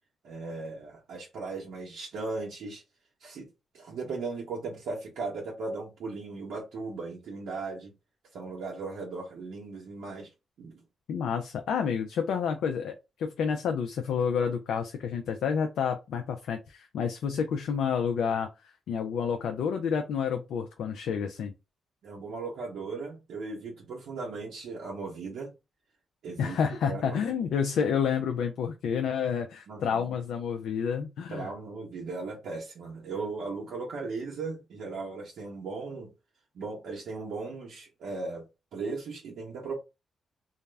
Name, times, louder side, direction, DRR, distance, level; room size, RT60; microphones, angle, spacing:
voice 1, 0.2-2.8 3.2-3.5 3.7-7.9 8.3-10.3 10.6-10.8 22.0-25.5 26.2-26.6 26.8-27.2 29.7-30.2 31.3-36.1 36.5-38.4 38.7-39.8, right 3 dB, 80° right, 0.7 m, -37 dB
voice 2, 11.1-18.5 18.9-21.5 26.4-31.5, left 7 dB, 80° left, 0.3 m, -29 dB
2.3 x 2.1 x 3.2 m
supercardioid pair, 60°, 0 cm